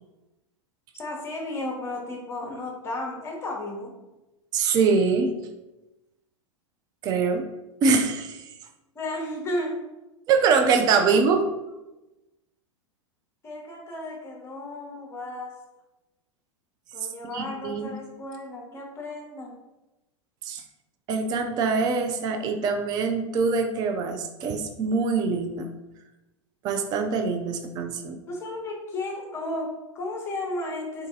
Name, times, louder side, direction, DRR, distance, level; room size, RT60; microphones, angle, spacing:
voice 1, 0.9-3.9 8.9-9.8 11.0-11.2 13.4-15.5 16.9-19.6 28.3-31.1, left 1 dB, 15° left, 0 dB, 0.9 m, -34 dB
voice 2, 4.5-5.3 7.0-7.4 7.8-8.4 10.3-11.4 17.3-17.9 20.4-20.6 21.1-25.7 26.6-28.2, right 5 dB, 25° right, 5 dB, 0.4 m, -23 dB
3.7 x 2.6 x 3.8 m, 1.0 s
figure-of-eight pair, 95°, 16 cm